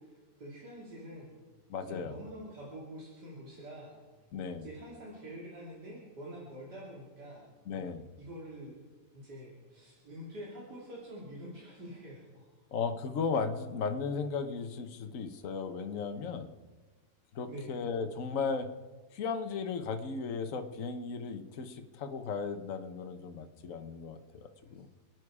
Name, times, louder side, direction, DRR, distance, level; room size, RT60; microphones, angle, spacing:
voice 1, 0.0-1.3 1.9-4.0 4.6-7.5 8.2-8.8 9.1-12.5 17.5-17.9, equal, 75° right, -5 dB, 3.4 m, -46 dB
voice 2, 1.7-2.2 4.3-4.7 7.7-8.1 12.7-16.5 17.3-18.7 19.1-24.9, left 5 dB, 55° left, 7 dB, 1.4 m, -36 dB
28.5 x 9.7 x 4.9 m, 1.3 s
omnidirectional pair, 1.8 m